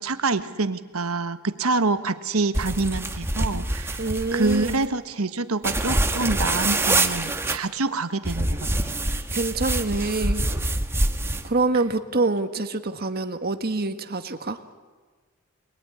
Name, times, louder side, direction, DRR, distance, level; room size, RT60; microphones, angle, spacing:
voice 1, 0.0-4.0 4.3-8.9, right 3 dB, 75° right, 11 dB, 1.3 m, -26 dB
sound 1, 2.5-4.9 5.6-7.6 8.3-11.5, right 2 dB, 10° right, 1.3 m, -25 dB
voice 2, 4.0-4.7 9.3-10.5 11.4-14.6, right 3 dB, 45° right, 8 dB, 1.6 m, -26 dB
26.5 x 21.0 x 9.9 m, 1.4 s
head